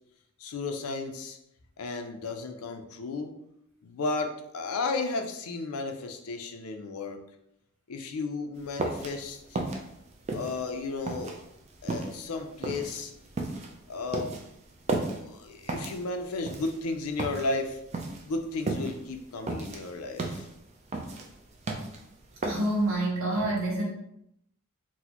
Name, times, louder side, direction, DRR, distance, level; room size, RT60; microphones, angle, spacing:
voice 1, 0.4-1.4 1.8-3.3 3.8-7.2 7.9-9.6 10.3-11.4 11.8-13.1 13.9-14.4 15.0-17.8 18.2-20.5, left 3 dB, 85° left, 5 dB, 0.5 m, -34 dB
sound 1, 8.6-22.9, right 2 dB, 30° right, 0.4 m, -35 dB
voice 2, 22.4-23.8, right 1 dB, 70° right, -3 dB, 1.0 m, -27 dB
4.0 x 2.1 x 2.9 m, 0.80 s
head